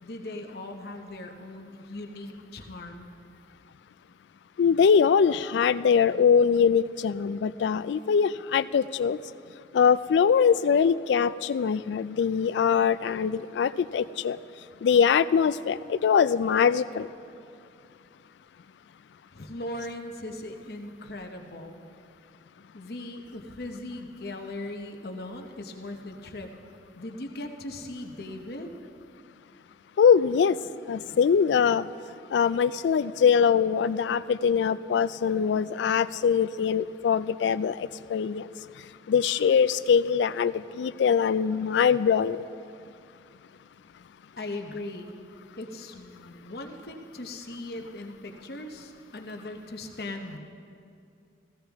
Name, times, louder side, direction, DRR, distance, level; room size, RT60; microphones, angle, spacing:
voice 1, 0.0-3.2 19.3-21.8 22.7-26.5 27.0-28.7 44.4-45.1 45.6-50.4, left 1 dB, 60° left, 4 dB, 0.9 m, -39 dB
voice 2, 4.6-9.2 9.7-14.4 14.8-17.1 30.0-30.6 30.9-31.9 32.3-38.5 39.1-42.4, left 7 dB, 85° left, 16 dB, 0.3 m, -23 dB
15.5 x 15.0 x 3.5 m, 2.5 s
head